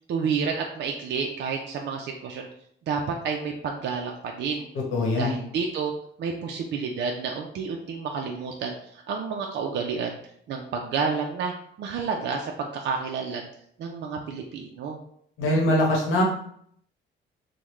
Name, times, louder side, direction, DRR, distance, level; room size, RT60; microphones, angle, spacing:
voice 1, 0.1-2.5 2.9-4.7 5.2-5.9 6.2-10.2 10.5-13.5 13.8-15.0, right 5 dB, 60° right, 1 dB, 0.4 m, -30 dB
voice 2, 4.9-5.4 15.4-16.2, left 1 dB, 90° left, -2 dB, 1.0 m, -22 dB
3.5 x 2.1 x 3.0 m, 0.67 s
cardioid pair, 90°, 20 cm